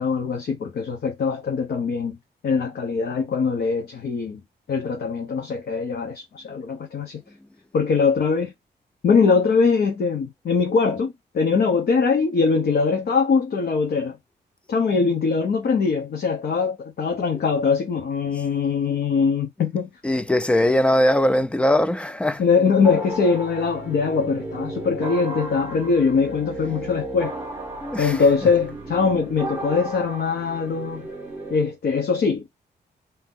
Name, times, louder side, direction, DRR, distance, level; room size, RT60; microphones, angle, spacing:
voice 1, 0.0-2.2 2.4-4.4 4.7-7.2 7.7-8.5 9.0-14.2 14.7-19.9 22.4-27.3 28.0-31.1 31.5-32.6, left 5 dB, 60° left, 0.9 m, -22 dB
voice 2, 20.0-22.4 27.8-28.2, left 1 dB, 5° left, 0.3 m, -20 dB
sound 1, 22.8-31.6, right 2 dB, 10° right, 1.4 m, -34 dB
2.9 x 2.8 x 3.6 m
wide cardioid pair, 150°, 18 cm